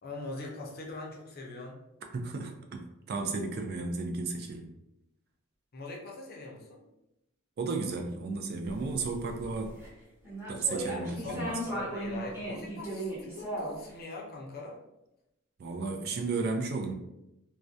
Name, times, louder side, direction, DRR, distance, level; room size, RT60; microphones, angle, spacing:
voice 1, 0.0-1.8 5.7-6.8 11.0-14.8, left 2 dB, 45° left, -1 dB, 0.5 m, -42 dB
voice 2, 2.1-4.7 7.6-9.8 10.5-11.6 15.6-16.9, right 3 dB, 50° right, 3 dB, 0.3 m, -33 dB
sound 1, 8.7-9.9 10.2-13.9, right 1 dB, 10° right, 0.7 m, -37 dB
2.3 x 2.1 x 2.5 m, 0.89 s
head